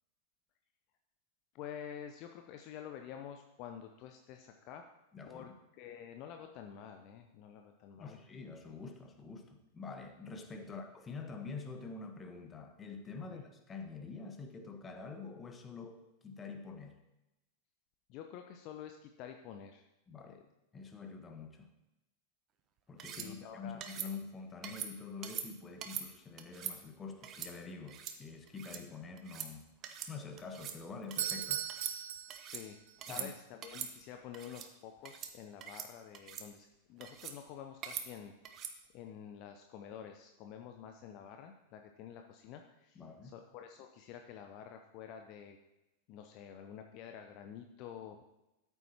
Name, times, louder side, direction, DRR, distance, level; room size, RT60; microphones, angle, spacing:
voice 1, 1.5-4.8 5.2-5.5 5.8-8.2 10.6-10.8 13.2-13.4 18.1-19.8 20.2-20.4 23.1-23.8 32.5-32.8 33.0-38.3 38.9-45.6 46.1-48.2, left 9 dB, 40° left, 5 dB, 0.7 m, -49 dB
voice 2, 5.1-5.5 8.0-17.0 20.1-20.4 20.7-21.7 22.9-29.7 30.1-31.9 33.1-33.3 42.9-43.3, left 4 dB, 20° left, 6 dB, 1.2 m, -46 dB
sound 1, 23.0-23.3 23.8-24.1 24.6-24.9 25.2-25.5 25.8-26.1 26.4-26.7 27.2-27.5 27.9-28.2 28.5-28.8 29.2-29.5 29.8-30.1 30.4-30.8 31.1-31.4 31.7-32.6 33.0-33.3 33.6-33.9 34.3-34.7 35.0-35.3 35.6-35.9 36.1-36.5 37.0-37.4 37.8-38.1 38.4-38.7, right 8 dB, 30° right, 0.9 m, -42 dB
Doorbell, 31.0-33.0, right 10 dB, 55° right, 0.6 m, -38 dB
13.5 x 8.1 x 2.9 m, 0.94 s
figure-of-eight pair, 90°, 0 cm